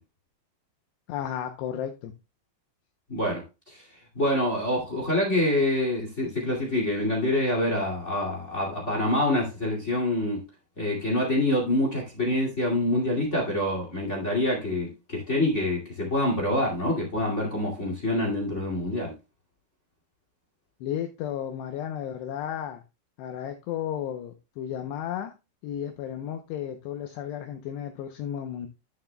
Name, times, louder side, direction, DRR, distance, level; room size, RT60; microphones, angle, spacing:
voice 1, 1.1-2.1 20.8-22.8 23.2-25.3 25.6-28.7, left 10 dB, 80° left, 2.6 m, -33 dB
voice 2, 3.1-3.8 4.1-10.4 10.8-19.1, left 1 dB, 45° left, 0.9 m, -26 dB
13.0 x 7.0 x 2.3 m
omnidirectional pair, 5.5 m